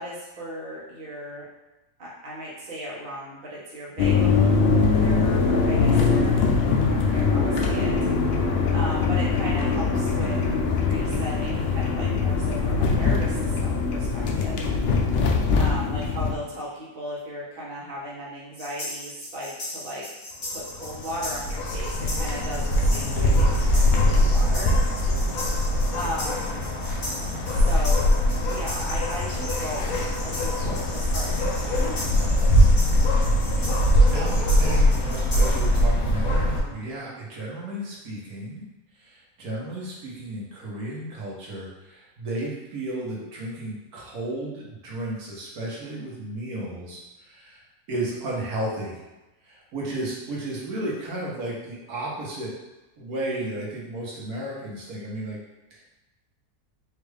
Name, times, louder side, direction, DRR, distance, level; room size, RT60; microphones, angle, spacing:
voice 1, 0.0-1.5 2.0-6.4 6.9-8.4 8.7-10.4 10.7-14.7 15.6-20.0 20.5-24.8 25.9-26.7 27.5-28.1 28.4-32.7, equal, 45° right, -6 dB, 1.0 m, -36 dB
sound 1, 4.0-16.3, left 4 dB, 85° left, 0.5 m, -22 dB
sound 2, 18.6-35.8, left 1 dB, 50° left, 1.5 m, -38 dB
sound 3, 20.5-36.6, equal, 70° left, 1.1 m, -22 dB
voice 2, 34.1-38.6 38.9-49.0 49.4-52.5 53.0-55.4 55.7-55.8, right 1 dB, 75° right, -4 dB, 1.6 m, -33 dB
4.5 x 2.5 x 3.3 m, 1.1 s
omnidirectional pair, 1.6 m